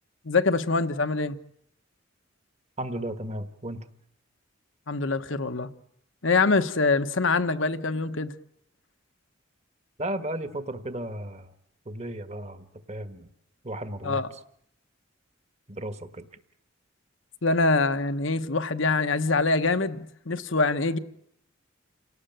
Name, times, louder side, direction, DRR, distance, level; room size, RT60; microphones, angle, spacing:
voice 1, 0.2-1.4 4.9-5.7 6.2-8.3 14.0-14.3 17.4-21.0, left 3 dB, 70° left, 1.2 m, -24 dB
voice 2, 2.8-3.8 10.0-11.5 11.8-13.3 13.6-14.2 15.7-16.3, right 1 dB, 35° right, 1.5 m, -34 dB
28.5 x 18.5 x 9.1 m
head